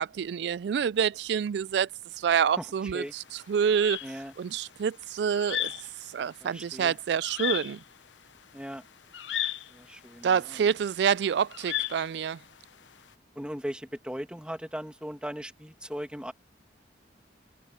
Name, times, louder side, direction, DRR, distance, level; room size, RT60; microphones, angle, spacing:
voice 1, 0.0-1.9 2.2-4.0 4.4-5.7 6.0-7.8 10.2-12.4, right 7 dB, 70° right, 0.3 m, -27 dB
voice 2, 2.5-3.1 4.0-4.3 6.4-7.0 8.5-8.9 9.7-10.6 13.4-16.3, equal, 5° right, 2.0 m, -38 dB
sound 1, 3.1-13.0, left 12 dB, 90° left, 0.8 m, -35 dB
head